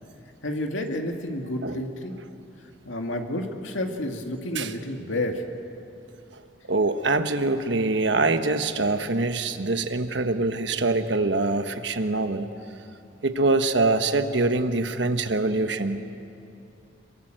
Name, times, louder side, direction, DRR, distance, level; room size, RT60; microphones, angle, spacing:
voice 1, 0.4-2.2 2.9-5.4, left 1 dB, 90° left, 3 dB, 2.3 m, -30 dB
voice 2, 6.7-12.5 13.2-16.0, right 2 dB, 70° right, 8 dB, 1.3 m, -24 dB
26.5 x 23.0 x 7.8 m, 2.8 s
head